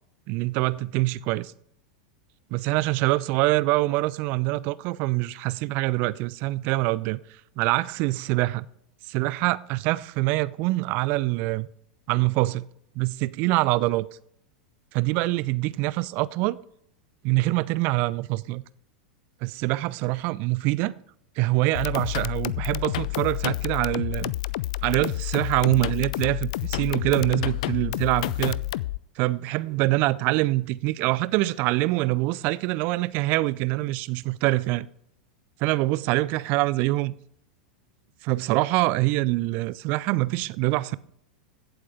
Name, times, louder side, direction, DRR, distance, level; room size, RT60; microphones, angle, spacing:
voice 1, 0.3-1.5 2.5-8.7 9.1-11.7 12.1-12.7 12.9-14.1 14.9-16.6 17.2-18.6 19.4-20.9 21.4-24.3 24.8-28.6 29.2-34.9 35.6-37.2 38.2-41.0, right 20 dB, 45° right, 0.5 m, -25 dB
sound 1, 21.8-29.0, left 17 dB, 55° left, 0.4 m, -29 dB
16.0 x 8.0 x 3.5 m
figure-of-eight pair, 90°, 4 cm